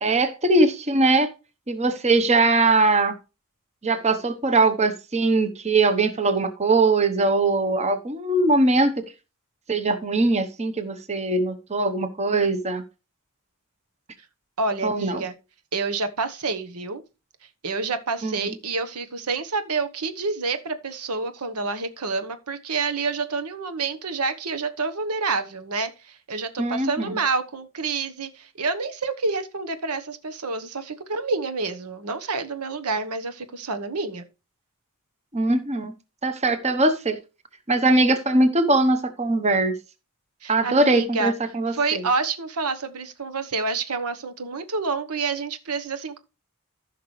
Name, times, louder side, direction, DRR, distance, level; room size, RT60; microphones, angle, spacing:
voice 1, 0.0-1.3 1.7-3.1 3.8-9.1 9.7-12.8 14.8-15.2 18.2-18.5 26.6-27.2 35.3-35.9 36.2-37.2 37.7-39.7 40.5-42.0, right 2 dB, 30° right, 1.0 m, -21 dB
voice 2, 14.6-15.3 15.7-17.0 17.6-34.2 40.4-41.3 41.7-46.2, right 4 dB, 90° right, 1.1 m, -28 dB
15.0 x 5.9 x 3.2 m
head